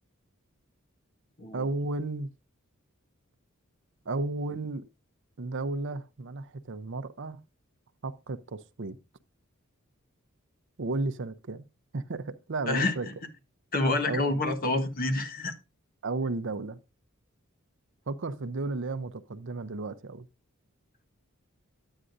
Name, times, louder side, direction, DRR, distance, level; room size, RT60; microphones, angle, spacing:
voice 1, 1.5-2.3 4.1-4.8 5.4-7.4 8.0-9.0 10.8-11.6 11.9-13.1 14.0-14.6 16.0-16.8 18.1-20.3, right 3 dB, 60° right, 0.7 m, -33 dB
voice 2, 13.7-15.5, left 2 dB, 45° left, 1.3 m, -27 dB
11.0 x 8.9 x 2.6 m
head